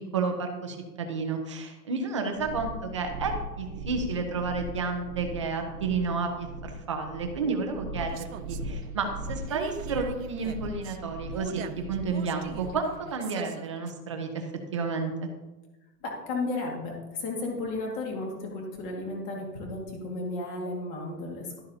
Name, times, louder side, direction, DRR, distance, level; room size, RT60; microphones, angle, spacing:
voice 1, 0.1-14.5 14.7-15.3, right 4 dB, 20° right, 4 dB, 0.5 m, -31 dB
sound 1, 2.3-12.9, right 1 dB, 35° right, 1.1 m, -39 dB
sound 2, 8.0-13.9, right 9 dB, 55° right, 0.7 m, -42 dB
voice 2, 16.0-21.6, left 2 dB, 25° left, 0 dB, 1.9 m, -34 dB
12.0 x 10.5 x 2.7 m, 1.1 s
supercardioid pair, 175°, 48 cm